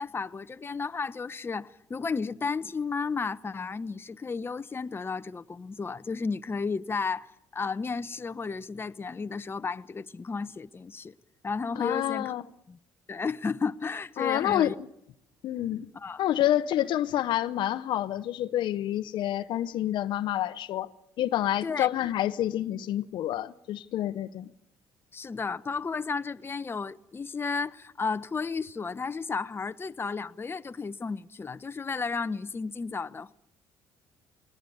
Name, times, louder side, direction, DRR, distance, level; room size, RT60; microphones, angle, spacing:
voice 1, 0.0-11.1 11.4-12.3 12.7-12.8 13.1-14.7 15.9-16.2 21.6-21.9 25.1-33.3, left 4 dB, 25° left, 0.8 m, -33 dB
voice 2, 11.8-12.4 14.2-14.9 15.4-15.9 16.2-20.9 21.2-24.5, left 12 dB, 65° left, 0.8 m, -28 dB
20.5 x 19.0 x 9.5 m
supercardioid pair, 70°, 9 cm